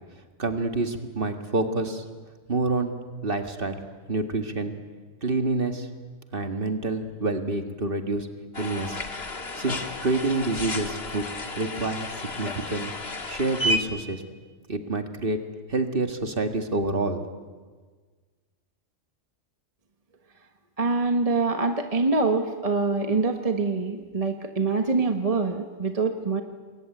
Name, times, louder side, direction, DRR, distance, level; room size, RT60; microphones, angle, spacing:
voice 1, 0.4-2.0 2.5-3.8 4.1-4.7 5.2-5.9 6.3-8.3 8.6-9.0 9.6-11.2 11.6-12.1 12.4-12.9 13.3-14.2 14.7-17.3, right 2 dB, 45° right, 6 dB, 2.1 m, -27 dB
sound 1, 8.5-13.8, left 1 dB, 55° left, 2.1 m, -32 dB
voice 2, 20.8-26.4, right 3 dB, 30° right, 5 dB, 1.4 m, -25 dB
27.5 x 21.5 x 9.2 m, 1.4 s
omnidirectional pair, 1.3 m